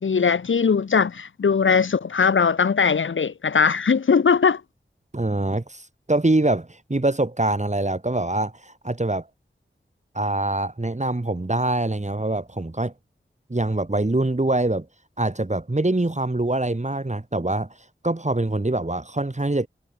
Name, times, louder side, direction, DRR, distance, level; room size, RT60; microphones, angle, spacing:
voice 1, 0.0-4.6, left 6 dB, 85° left, 0.8 m, -20 dB
voice 2, 5.1-9.3 10.1-12.9 13.5-14.9 15.2-17.7 18.0-19.7, right 2 dB, 35° right, 3.3 m, -24 dB
wide cardioid pair, 40°, 20 cm